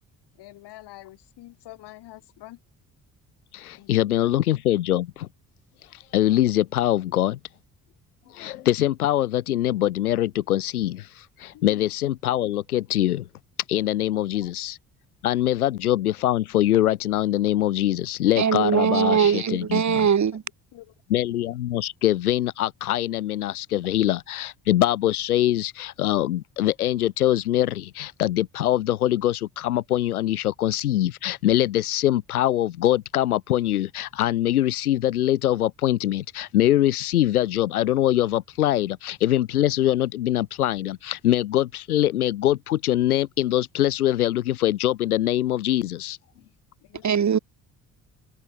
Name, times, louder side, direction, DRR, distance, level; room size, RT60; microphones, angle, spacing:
voice 1, 0.4-2.6 3.7-4.6 11.5-11.8 15.5-15.6 18.8-19.2 20.7-20.9 46.9-47.1, left 16 dB, 65° left, 4.4 m, -46 dB
voice 2, 3.5-5.3 6.1-7.4 8.3-13.3 13.7-14.8 15.2-20.0 21.1-46.2, left 13 dB, 85° left, 1.5 m, -23 dB
voice 3, 18.4-20.4 47.0-47.4, right 7 dB, 40° right, 2.4 m, -21 dB
open air
hypercardioid pair, 50°, 43 cm